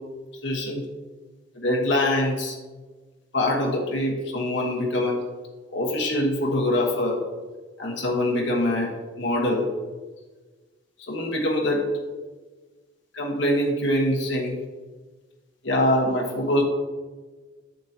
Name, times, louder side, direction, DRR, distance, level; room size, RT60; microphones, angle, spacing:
voice 1, 0.4-0.8 1.5-2.6 3.3-5.2 5.7-7.2 7.8-8.9 9.2-9.7 11.0-11.9 13.1-14.6 15.6-16.6, left 1 dB, 80° left, -1 dB, 1.3 m, -24 dB
8.0 x 7.9 x 2.9 m, 1.3 s
head